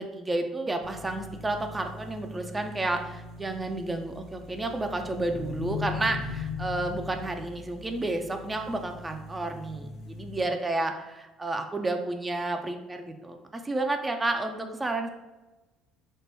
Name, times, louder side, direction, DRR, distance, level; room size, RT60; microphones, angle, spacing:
voice 1, 0.0-15.1, right 2 dB, 20° right, 5 dB, 0.4 m, -31 dB
sound 1, 0.8-10.4, left 4 dB, 60° left, 0.5 m, -40 dB
3.1 x 2.1 x 3.2 m, 1.1 s
hypercardioid pair, 60°, 0 cm